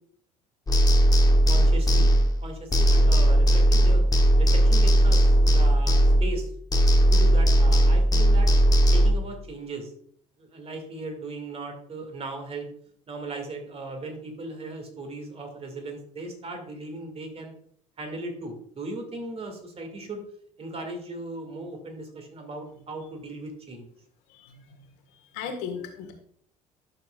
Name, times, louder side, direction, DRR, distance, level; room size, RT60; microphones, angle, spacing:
sound 1, 0.7-6.4 6.7-9.1, equal, 20° left, 1.2 m, -18 dB
voice 1, 1.5-2.1 2.4-4.0 4.4-6.5 7.1-8.5 8.9-9.9 10.4-12.7 13.1-17.5 18.0-20.2 20.6-23.9, right 2 dB, 30° right, 3 dB, 2.2 m, -37 dB
voice 2, 24.3-24.6 25.1-26.1, left 6 dB, 60° left, 4 dB, 1.6 m, -36 dB
11.5 x 6.6 x 2.4 m, 0.63 s
figure-of-eight pair, 55°, 19 cm